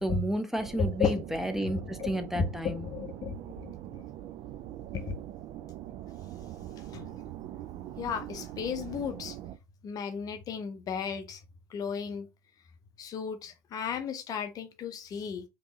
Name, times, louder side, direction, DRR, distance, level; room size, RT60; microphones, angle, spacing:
voice 1, 0.0-2.9, equal, 5° right, 0.6 m, -32 dB
sound 1, 0.6-9.6, right 12 dB, 45° right, 0.4 m, -43 dB
voice 2, 0.8-1.2 1.6-2.5 2.8-4.0 4.9-5.1 6.9-7.1 8.0-9.4 9.8-11.4 11.7-12.3 13.0-15.4, left 6 dB, 40° left, 0.6 m, -34 dB
3.4 x 2.9 x 2.9 m
figure-of-eight pair, 65°, 10 cm